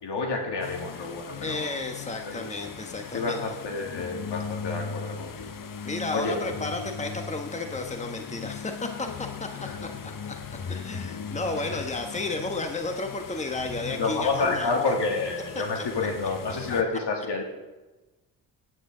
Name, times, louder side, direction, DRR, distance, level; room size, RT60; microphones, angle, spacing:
voice 1, 0.0-1.8 2.2-2.5 3.1-5.6 6.1-6.4 9.6-9.8 11.6-11.8 13.9-17.4, left 3 dB, 65° left, 1 dB, 2.9 m, -29 dB
sound 1, 0.6-16.8, left 6 dB, 45° left, 1.0 m, -38 dB
voice 2, 1.4-3.4 5.8-10.3 10.7-14.7, left 2 dB, 15° left, 5 dB, 1.4 m, -33 dB
16.5 x 9.2 x 4.0 m, 1.1 s
supercardioid pair, 55°, 44 cm